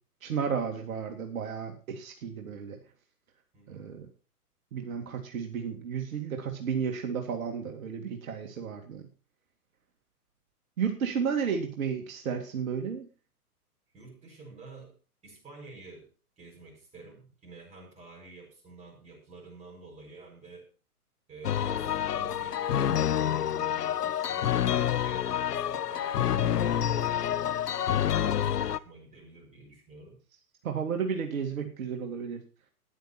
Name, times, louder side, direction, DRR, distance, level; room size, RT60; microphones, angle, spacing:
voice 1, 0.2-2.8 3.7-4.1 4.7-9.1 10.8-13.0 30.6-32.4, right 6 dB, 60° right, 3 dB, 2.3 m, -33 dB
voice 2, 3.5-3.9 11.4-11.6 13.9-15.0 15.2-16.1 16.4-20.7 21.3-30.2, right 3 dB, 15° right, -1 dB, 6.6 m, -50 dB
sound 1, 21.4-28.8, left 10 dB, 80° left, 0.8 m, -28 dB
14.0 x 10.5 x 4.4 m, 0.36 s
hypercardioid pair, 125°, 46 cm